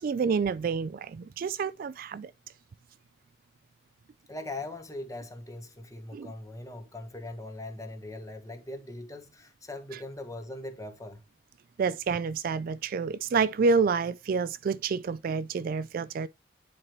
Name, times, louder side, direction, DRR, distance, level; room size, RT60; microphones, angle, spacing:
voice 1, 0.0-2.3 6.1-6.3 11.8-16.3, right 5 dB, 50° right, 0.3 m, -28 dB
voice 2, 4.3-11.2, left 1 dB, 20° left, 1.2 m, -40 dB
9.8 x 4.5 x 3.0 m
head